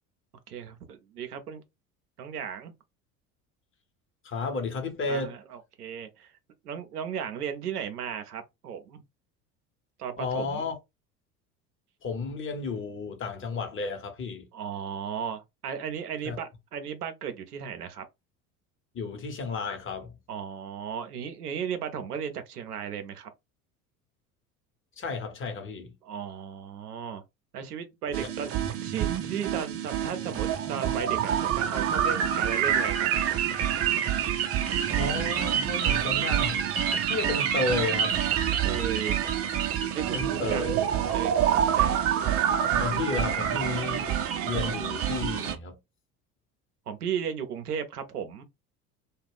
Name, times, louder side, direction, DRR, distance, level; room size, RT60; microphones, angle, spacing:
voice 1, 0.5-1.6 2.2-2.7 5.1-5.4 5.8-6.3 6.6-9.0 10.0-10.7 14.5-18.0 20.3-23.3 26.0-27.2 27.5-33.4 38.6-39.3 39.9-40.8 41.1-42.0 46.9-48.4, right 8 dB, 80° right, 0.6 m, -35 dB
voice 2, 4.2-5.4 10.2-10.7 12.0-14.5 16.2-16.4 18.9-20.2 25.0-25.9 28.1-28.2 34.9-38.2 40.1-40.7 42.6-44.1 44.4-45.8, left 4 dB, 25° left, 0.9 m, -32 dB
sound 1, 28.1-45.5, right 9 dB, 30° right, 0.6 m, -27 dB
2.3 x 2.2 x 3.4 m
figure-of-eight pair, 70°, 45 cm